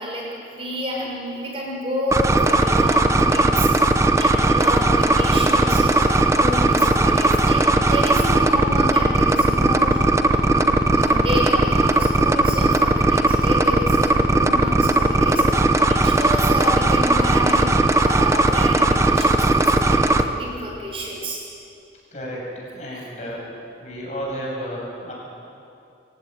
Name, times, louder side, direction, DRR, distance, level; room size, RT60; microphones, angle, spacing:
voice 1, 0.0-21.4 22.9-23.0, equal, 30° right, -2 dB, 6.0 m, -30 dB
sound 1, 2.1-20.2, right 2 dB, 15° right, 0.9 m, -17 dB
voice 2, 22.1-22.5 22.7-23.5 23.8-25.1, equal, 40° left, -3 dB, 7.4 m, -32 dB
25.5 x 16.0 x 9.5 m, 2.6 s
head